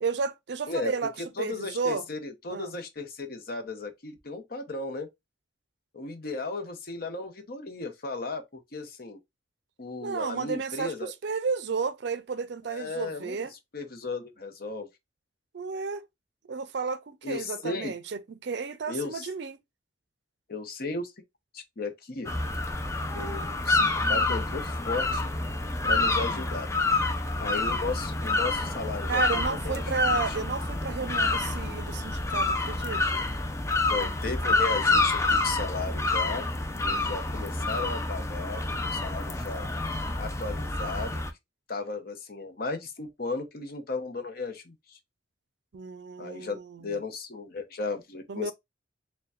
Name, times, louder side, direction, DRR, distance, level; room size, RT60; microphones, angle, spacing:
voice 1, 0.0-1.1 1.4-2.1 2.5-2.7 10.0-13.5 15.5-16.1 16.4-19.6 29.1-33.3 45.7-46.9 48.3-48.5, right 5 dB, 65° right, 0.4 m, -32 dB
voice 2, 1.2-5.1 5.9-8.4 8.7-9.2 9.8-11.1 12.7-14.9 17.2-17.9 18.9-19.3 20.5-21.1 21.5-22.3 23.1-25.3 25.8-26.7 27.4-29.8 30.1-30.2 33.9-36.4 36.8-39.7 40.2-41.1 41.7-45.0 46.2-48.5, left 3 dB, 50° left, 0.8 m, -35 dB
sound 1, 22.3-41.3, left 3 dB, 15° left, 0.5 m, -28 dB
6.7 x 2.2 x 2.3 m
head